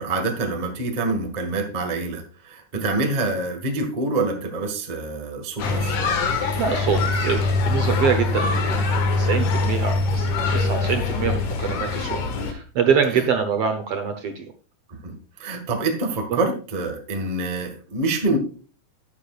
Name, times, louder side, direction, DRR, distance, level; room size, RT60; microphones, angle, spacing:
voice 1, 0.0-6.0 14.9-18.4, right 2 dB, 25° right, 4 dB, 1.0 m, -26 dB
sound 1, 5.6-12.5, left 3 dB, 80° left, 3.2 m, -23 dB
voice 2, 6.6-14.5 16.3-16.4, right 6 dB, 65° right, 6 dB, 1.7 m, -25 dB
11.5 x 10.0 x 2.4 m, 0.38 s
omnidirectional pair, 3.5 m